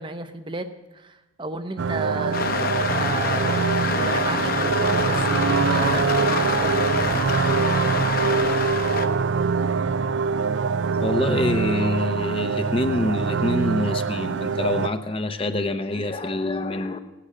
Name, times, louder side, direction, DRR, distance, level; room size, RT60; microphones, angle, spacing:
voice 1, 0.0-2.4 2.8-3.7 4.0-6.9, right 2 dB, 25° right, 8 dB, 0.7 m, -33 dB
sound 1, 1.8-14.9, right 5 dB, 70° right, 0.4 m, -24 dB
sound 2, 2.3-9.1, left 4 dB, 45° left, 1.1 m, -26 dB
voice 2, 10.7-17.0, left 2 dB, 25° left, 8 dB, 0.8 m, -26 dB
17.5 x 10.0 x 7.6 m, 1.0 s
head